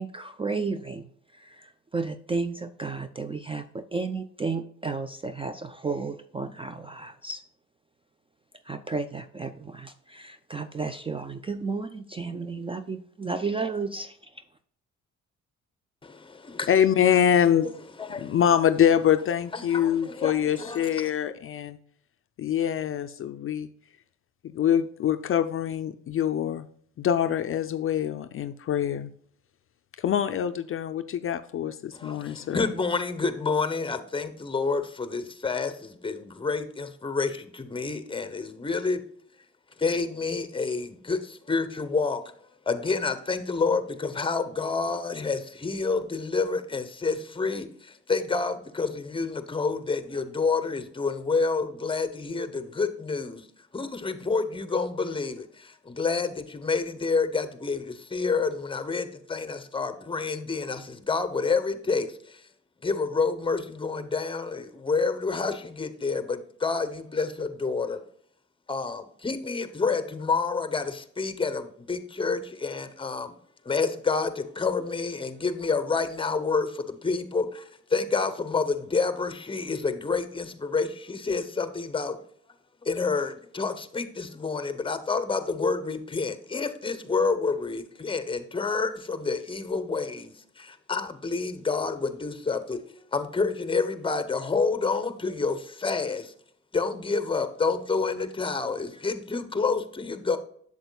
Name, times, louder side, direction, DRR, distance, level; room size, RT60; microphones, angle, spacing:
voice 1, 0.0-7.4 8.6-14.4, right 4 dB, 20° right, 10 dB, 0.3 m, -33 dB
voice 2, 16.0-16.7 18.0-18.4 19.5-21.1 31.9-39.0 39.8-42.2 42.7-53.5 53.7-62.4 62.8-68.0 68.7-73.3 73.7-82.2 82.8-96.3 96.7-100.4, left 4 dB, 15° left, 10 dB, 0.8 m, -28 dB
voice 3, 16.7-17.7 18.2-21.8 22.4-23.7 24.4-26.7 27.0-29.1 30.0-32.7, left 9 dB, 45° left, 10 dB, 0.4 m, -24 dB
7.8 x 7.2 x 2.2 m, 0.63 s
cardioid pair, 90°, 30 cm